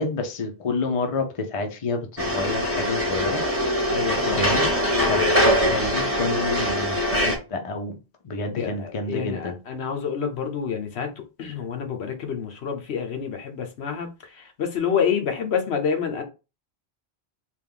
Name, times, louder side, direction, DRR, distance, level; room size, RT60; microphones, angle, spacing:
voice 1, 0.0-3.4 4.3-8.0 8.2-9.5, left 3 dB, 35° left, 0.7 m, -29 dB
sound 1, 2.2-7.4, equal, 15° right, 0.9 m, -22 dB
voice 2, 3.9-4.5 8.6-16.2, left 7 dB, 80° left, 1.1 m, -28 dB
3.5 x 2.5 x 3.8 m
omnidirectional pair, 1.1 m